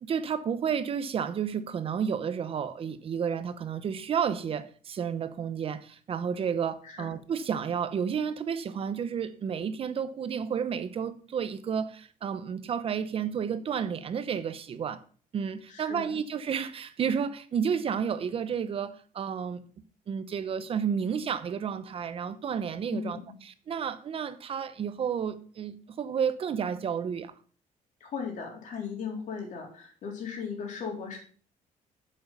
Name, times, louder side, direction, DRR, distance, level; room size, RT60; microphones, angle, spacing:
voice 1, 0.0-15.0 15.3-27.3, right 7 dB, 40° right, 0.9 m, -31 dB
voice 2, 15.7-16.2 22.9-23.2 28.0-31.2, left 6 dB, 60° left, 3.8 m, -37 dB
7.9 x 7.6 x 5.5 m
cardioid pair, 155°, 14 cm